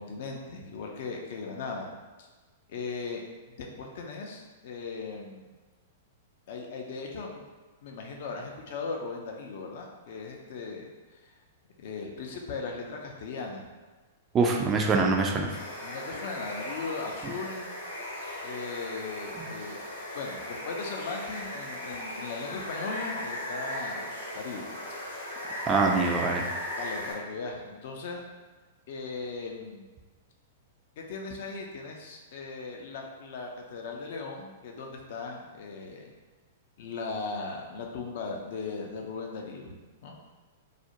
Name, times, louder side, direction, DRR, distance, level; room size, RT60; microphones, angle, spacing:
voice 1, 0.0-1.9 2.2-2.3 2.7-3.2 3.5-5.5 6.5-7.4 7.8-11.3 11.8-13.7 15.8-17.7 18.4-19.8 20.1-25.2 25.8-26.0 26.8-28.2 28.9-29.9 31.0-36.1 36.8-39.8 40.0-40.2, left 4 dB, 55° left, 1 dB, 0.4 m, -38 dB
voice 2, 14.3-15.5 19.4-19.5 25.7-26.4, right 4 dB, 25° right, 2 dB, 0.3 m, -24 dB
Water, 15.5-27.1, left 1 dB, 80° left, 0.8 m, -37 dB
2.4 x 2.0 x 2.8 m, 1.3 s
figure-of-eight pair, 105°, 0 cm